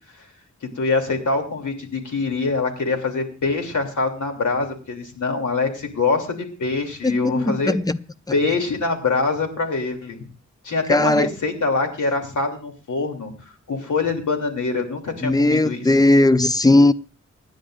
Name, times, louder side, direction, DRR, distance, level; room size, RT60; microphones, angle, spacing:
voice 1, 0.6-7.8 8.3-10.2 10.6-15.9, left 3 dB, 85° left, 3.0 m, -24 dB
voice 2, 7.0-8.0 10.9-11.3 15.2-16.9, left 2 dB, 15° left, 0.5 m, -17 dB
25.0 x 10.5 x 2.5 m
wide cardioid pair, 125°, 30 cm